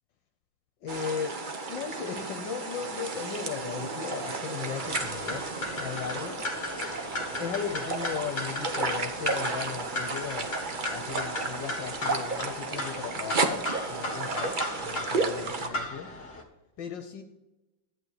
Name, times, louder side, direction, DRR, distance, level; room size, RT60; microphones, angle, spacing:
voice 1, 0.8-1.4 1.7-5.5 5.8-6.4 6.7-6.8 7.4-10.5 10.8-16.1 16.8-17.2, left 7 dB, 70° left, 6 dB, 1.5 m, -37 dB
sound 1, 0.9-15.7, right 3 dB, 45° right, 0.7 m, -33 dB
sound 2, 4.8-16.4, left 2 dB, 35° left, 1.6 m, -36 dB
11.5 x 8.4 x 4.9 m, 0.98 s
omnidirectional pair, 2.1 m